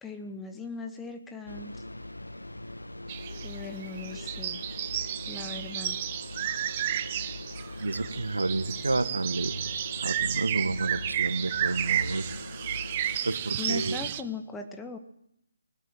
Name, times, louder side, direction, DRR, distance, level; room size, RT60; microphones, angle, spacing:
voice 1, 0.0-1.7 3.4-4.6 5.2-6.0 13.6-15.0, left 4 dB, 5° left, 5 dB, 1.6 m, -39 dB
sound 1, 1.5-13.2, left 1 dB, 85° left, 1.9 m, -41 dB
sound 2, 3.1-14.2, right 11 dB, 30° right, 1.1 m, -32 dB
voice 2, 7.8-12.3 13.2-14.0, right 2 dB, 70° right, 12 dB, 1.8 m, -30 dB
21.0 x 18.5 x 7.8 m, 0.74 s
figure-of-eight pair, 145°, 0 cm